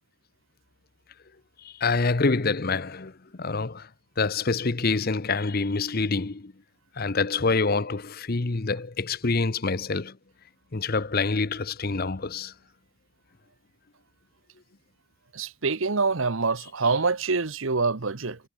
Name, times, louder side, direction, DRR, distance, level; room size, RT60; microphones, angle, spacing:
voice 1, 1.6-3.9 4.2-6.5 7.0-10.2 10.7-12.5, left 4 dB, 45° left, 0.8 m, -26 dB
voice 2, 15.3-18.4, right 4 dB, 70° right, 1.1 m, -25 dB
head